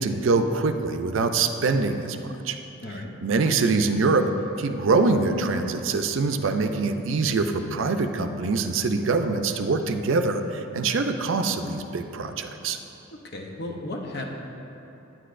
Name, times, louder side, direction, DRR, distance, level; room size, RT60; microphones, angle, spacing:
voice 1, 0.0-2.6 3.2-4.3 4.6-12.8, right 3 dB, 70° right, 7 dB, 0.4 m, -24 dB
voice 2, 13.1-14.3, left 2 dB, 55° left, 1 dB, 0.8 m, -35 dB
9.9 x 9.0 x 2.5 m, 3.0 s
head